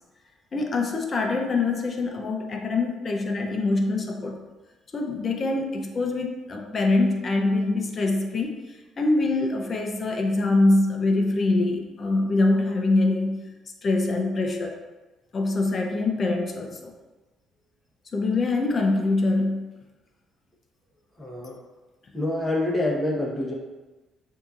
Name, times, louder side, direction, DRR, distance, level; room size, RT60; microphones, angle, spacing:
voice 1, 0.5-4.4 4.9-13.4 13.8-14.8 15.3-16.9 18.1-19.7, left 2 dB, 40° left, 3 dB, 0.7 m, -24 dB
voice 2, 21.2-21.6 22.1-23.5, left 1 dB, 10° left, -3 dB, 1.2 m, -26 dB
6.7 x 2.8 x 2.5 m, 1.2 s
cardioid pair, 85°, 0 cm